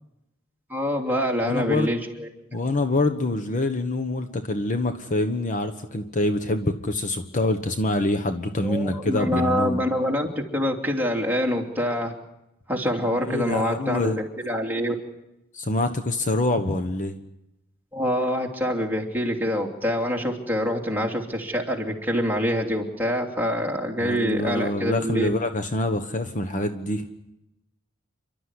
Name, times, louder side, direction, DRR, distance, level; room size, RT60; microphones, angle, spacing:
voice 1, 0.7-2.6 8.6-12.1 12.7-14.9 17.9-25.3, equal, 10° right, 0 dB, 3.0 m, -26 dB
voice 2, 1.4-1.9 2.5-9.8 13.3-14.2 15.5-17.1 24.0-27.0, left 2 dB, 40° left, 8 dB, 1.2 m, -25 dB
29.0 x 12.5 x 9.8 m, 0.90 s
head